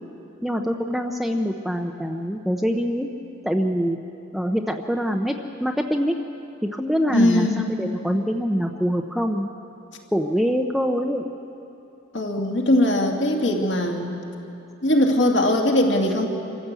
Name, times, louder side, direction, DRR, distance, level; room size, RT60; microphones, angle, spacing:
voice 1, 0.4-3.1 3.4-4.0 4.3-5.3 5.6-6.2 6.6-7.5 7.8-9.5 10.1-11.3, equal, ahead, 3 dB, 0.7 m, -24 dB
voice 2, 7.1-7.6 12.1-14.1 14.8-16.3, left 1 dB, 60° left, 1 dB, 2.4 m, -20 dB
26.5 x 14.5 x 8.2 m, 2.9 s
head